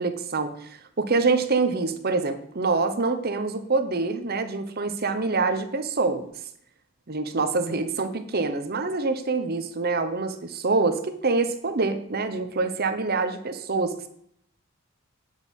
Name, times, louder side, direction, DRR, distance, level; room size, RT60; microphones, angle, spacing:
voice 1, 0.0-6.2 7.1-14.1, right 3 dB, 45° right, 9 dB, 0.9 m, -26 dB
9.1 x 6.4 x 5.3 m, 0.70 s
head